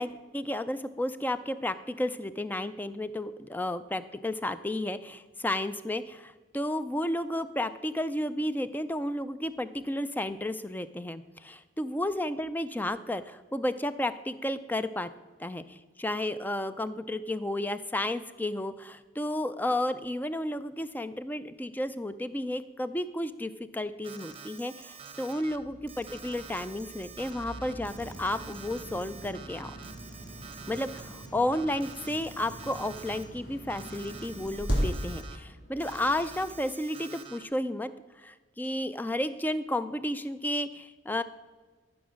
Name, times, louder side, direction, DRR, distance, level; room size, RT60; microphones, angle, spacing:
voice 1, 0.0-15.1 15.4-29.7 30.7-31.0 31.3-37.9 38.2-41.2, left 1 dB, 10° left, 13 dB, 0.3 m, -32 dB
Alarm, 24.0-25.6 25.9-31.3 31.5-33.2 33.7-35.4 35.8-37.4, right 6 dB, 25° right, 0.7 m, -47 dB
sound 1, 25.5-36.5, equal, 55° left, 2.8 m, -39 dB
13.5 x 6.0 x 6.3 m, 1.3 s
head